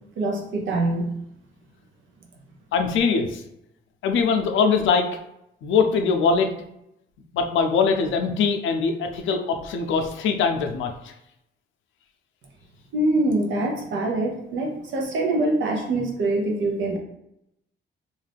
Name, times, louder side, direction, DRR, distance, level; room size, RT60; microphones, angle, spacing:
voice 1, 0.2-1.2 12.9-17.0, right 2 dB, 75° right, 1 dB, 0.8 m, -24 dB
voice 2, 2.7-3.4 4.0-5.1 5.6-6.5 7.3-11.1, left 5 dB, 75° left, 5 dB, 0.5 m, -22 dB
2.6 x 2.3 x 3.4 m, 0.82 s
cardioid pair, 90°, 20 cm